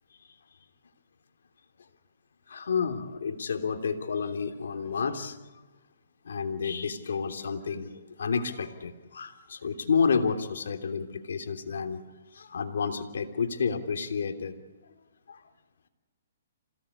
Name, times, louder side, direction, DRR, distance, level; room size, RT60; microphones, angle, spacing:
voice 1, 2.5-5.4 6.2-12.0 12.3-14.6 15.3-15.4, left 5 dB, 80° left, 6 dB, 3.1 m, -30 dB
27.5 x 18.0 x 8.5 m, 1.2 s
hypercardioid pair, 155°, 0 cm